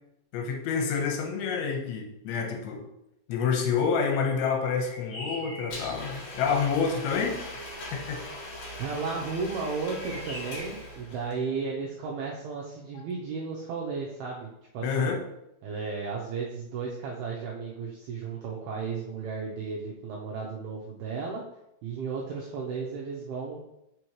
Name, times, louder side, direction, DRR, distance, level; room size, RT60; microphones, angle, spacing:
voice 1, 0.3-2.8 3.3-7.4 7.9-8.2 12.9-13.0 14.8-15.2, left 6 dB, 80° left, 2 dB, 3.2 m, -28 dB
sound 1, 4.7-6.1 10.0-10.9, equal, 35° left, 2.8 m, -42 dB
Domestic sounds home sounds, 5.7-11.3, left 1 dB, 50° left, 2.2 m, -40 dB
voice 2, 8.8-15.2 15.6-21.4 21.8-23.6, right 5 dB, 85° right, -2 dB, 2.2 m, -34 dB
6.5 x 6.2 x 3.1 m, 0.84 s
omnidirectional pair, 5.4 m